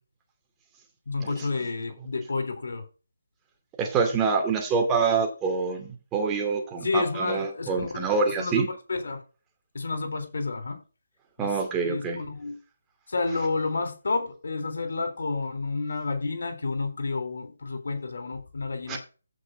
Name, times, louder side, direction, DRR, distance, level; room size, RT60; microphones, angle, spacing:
voice 1, 1.1-2.8 6.8-8.1 8.4-9.2 9.7-10.8 11.4-11.5 11.8-12.6 13.1-19.0, left 3 dB, 70° left, 3.6 m, -30 dB
voice 2, 3.8-8.7 11.4-12.2 18.9-19.0, right 5 dB, 15° right, 2.5 m, -26 dB
15.5 x 5.5 x 3.8 m
figure-of-eight pair, 155°, 0 cm